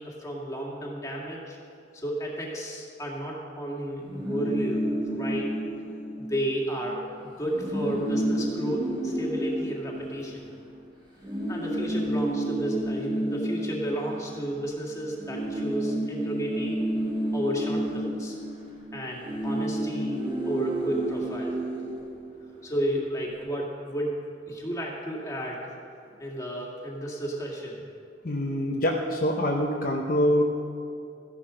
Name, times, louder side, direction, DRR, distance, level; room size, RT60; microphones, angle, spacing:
voice 1, 0.0-1.6 1.9-4.8 5.1-5.5 6.2-10.4 11.5-16.8 17.3-18.4 18.9-20.2 20.5-21.6 22.6-24.1 24.5-25.6 26.2-27.8, equal, 15° left, -3 dB, 2.2 m, -32 dB
sound 1, 4.0-6.6 6.9-7.0 7.3-10.7 11.2-14.8 15.0-22.6, right 1 dB, 25° right, 3.5 m, -31 dB
voice 2, 28.2-30.4, equal, 50° left, 0 dB, 0.9 m, -25 dB
14.5 x 11.0 x 5.1 m, 2.5 s
head